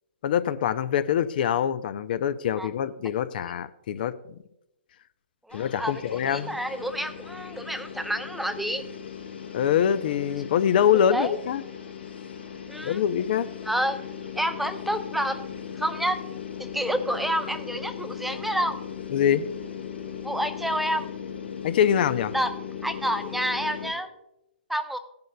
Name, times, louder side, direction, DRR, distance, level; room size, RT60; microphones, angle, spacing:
voice 1, 0.2-4.2 5.5-6.6 9.5-11.6 12.8-13.5 19.1-19.4 21.6-22.3, left 9 dB, 55° left, 0.6 m, -24 dB
sound 1, 5.5-23.9, left 8 dB, 85° left, 3.6 m, -38 dB
voice 2, 5.5-8.9 11.1-11.3 12.7-13.0 13.6-14.0 14.4-15.4 15.8-16.2 16.6-18.8 20.2-21.1 22.3-22.5 22.8-24.1 24.7-25.0, equal, ahead, 0.6 m, -29 dB
17.0 x 10.5 x 2.2 m
hypercardioid pair, 130°, 6 cm